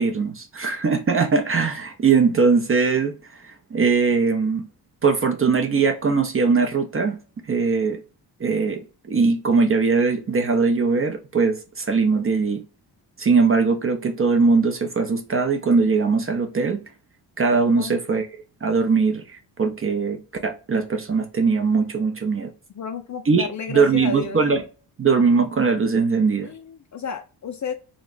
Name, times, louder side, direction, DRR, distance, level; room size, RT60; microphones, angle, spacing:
voice 1, 0.0-3.1 3.4-4.6 5.0-7.2 7.5-8.0 8.4-12.6 13.2-16.8 17.4-18.3 18.6-22.5 23.3-24.6 25.0-26.5, right 4 dB, 30° right, 0.4 m, -21 dB
voice 2, 22.7-24.4 26.4-27.7, left 6 dB, 40° left, 0.4 m, -32 dB
2.4 x 2.1 x 3.7 m
cardioid pair, 60°, 48 cm